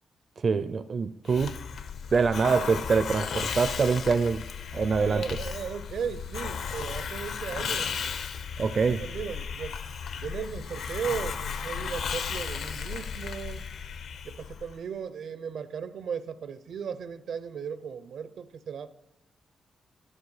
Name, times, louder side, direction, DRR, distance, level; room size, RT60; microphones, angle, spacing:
voice 1, 0.4-1.6 2.1-4.4 4.7-5.2 8.6-9.0, right 5 dB, 45° right, 0.5 m, -25 dB
Hiss, 1.3-14.8, left 6 dB, 75° left, 0.8 m, -35 dB
voice 2, 5.0-7.9 8.6-8.7 9.0-9.8 10.2-13.6 14.2-18.9, right 7 dB, 75° right, 0.8 m, -36 dB
13.5 x 12.0 x 4.9 m
wide cardioid pair, 145°, 0 cm